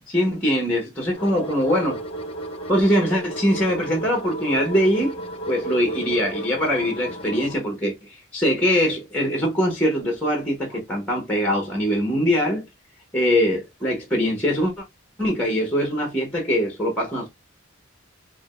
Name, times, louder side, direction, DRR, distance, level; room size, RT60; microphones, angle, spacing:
voice 1, 0.1-2.0 2.7-5.2 5.5-7.9 8.3-12.6 13.1-14.8 15.2-17.3, equal, 5° left, 1.2 m, -22 dB
sound 1, 1.1-7.6, right 1 dB, 30° left, 0.8 m, -33 dB
4.8 x 2.3 x 2.4 m
head